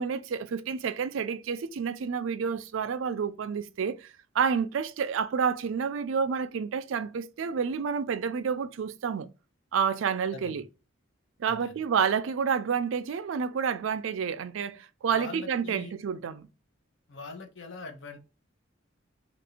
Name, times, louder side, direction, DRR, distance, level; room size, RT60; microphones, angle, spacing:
voice 1, 0.0-9.3 9.7-10.6 11.4-16.5, right 6 dB, 80° right, 0.4 m, -29 dB
voice 2, 10.3-10.7 11.5-11.7 15.1-15.9 17.1-18.2, left 4 dB, 70° left, 0.8 m, -42 dB
2.9 x 2.5 x 4.2 m
head